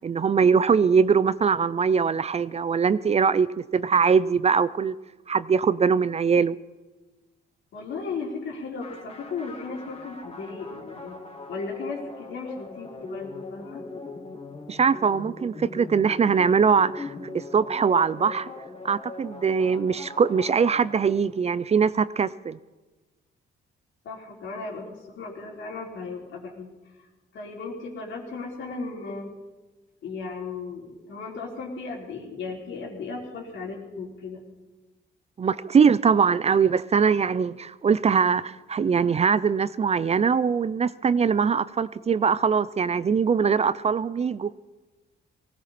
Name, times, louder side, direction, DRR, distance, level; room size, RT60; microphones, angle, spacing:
voice 1, 0.0-4.9 5.3-6.6 14.7-18.5 18.8-22.6 35.4-44.5, right 6 dB, 30° right, 0.5 m, -22 dB
voice 2, 7.7-11.2 11.5-13.8 24.0-26.7 27.0-27.1 27.3-29.3 30.0-34.4, left 4 dB, 75° left, 3.8 m, -36 dB
sound 1, 8.8-21.4, left 2 dB, 30° left, 2.3 m, -41 dB
19.0 x 17.0 x 4.3 m
cardioid pair, 90°, 20 cm